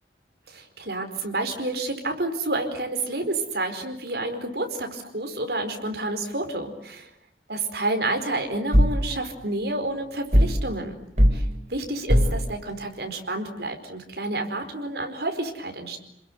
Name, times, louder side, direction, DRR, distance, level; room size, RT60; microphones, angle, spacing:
voice 1, 0.5-7.1 7.5-10.9 11.3-11.4 11.7-16.0, right 2 dB, 65° right, 5 dB, 4.7 m, -29 dB
sound 1, 8.7-9.0 10.3-10.6 11.2-11.4 12.1-12.4, equal, 40° right, 4.4 m, -18 dB
29.0 x 21.5 x 9.6 m, 0.75 s
head